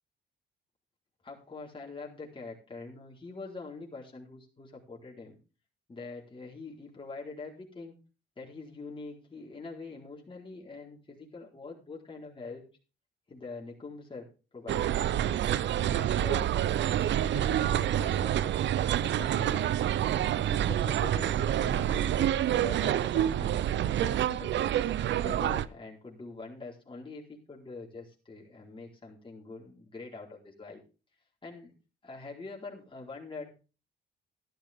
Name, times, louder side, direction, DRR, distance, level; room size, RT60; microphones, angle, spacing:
voice 1, 1.2-5.4 5.9-7.9 8.4-12.6 13.3-14.3 14.5-15.3 15.9-16.5 17.3-18.4 19.0-20.0 20.5-24.7 25.2-30.8 31.4-31.7 32.0-33.5, left 3 dB, 25° left, -2 dB, 4.3 m, -44 dB
sound 1, 14.7-25.7, right 11 dB, 65° right, 0.7 m, -27 dB
13.0 x 11.5 x 3.6 m, 0.33 s
cardioid pair, 90°, 20 cm